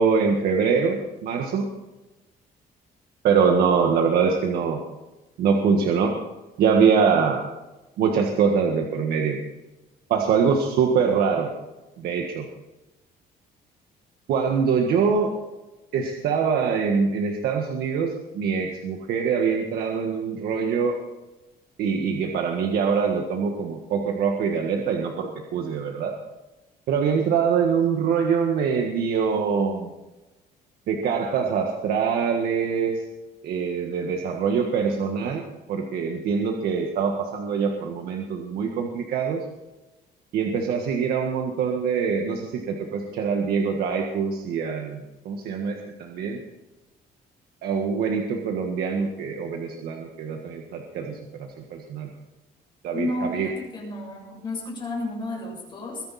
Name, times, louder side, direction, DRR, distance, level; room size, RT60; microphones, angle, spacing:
voice 1, 0.0-1.7 3.2-4.8 5.4-6.1 6.6-7.4 8.0-9.4 10.1-11.5 12.0-12.5 14.3-15.3 15.9-21.0 21.8-26.1 26.9-29.9 30.9-33.1 33.4-39.4 40.3-46.4 47.6-52.1 52.8-53.5, right 6 dB, 70° right, 2 dB, 1.7 m, -24 dB
voice 2, 52.9-56.0, left 2 dB, 30° left, -2 dB, 7.0 m, -31 dB
22.5 x 10.5 x 4.3 m, 1.1 s
cardioid pair, 175°, 17 cm